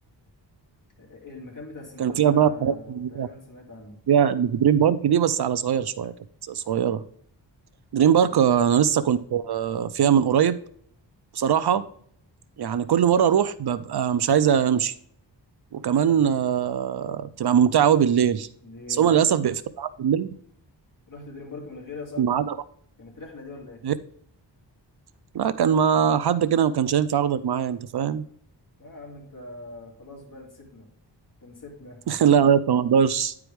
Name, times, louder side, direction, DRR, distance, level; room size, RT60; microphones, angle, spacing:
voice 1, 1.0-4.0 8.2-8.4 18.6-19.3 21.1-22.4 23.0-23.8 28.8-30.9 31.4-32.0, left 3 dB, 45° left, 0 dB, 2.4 m, -42 dB
voice 2, 2.0-3.3 4.1-6.1 6.5-7.0 7.9-10.6 11.3-11.9 12.6-14.9 15.7-18.5 19.0-20.3 22.2-22.6 23.8-23.9 25.3-28.2 32.1-33.3, right 8 dB, 65° right, 14 dB, 0.5 m, -21 dB
10.0 x 4.7 x 3.4 m, 0.62 s
wide cardioid pair, 90°, 43 cm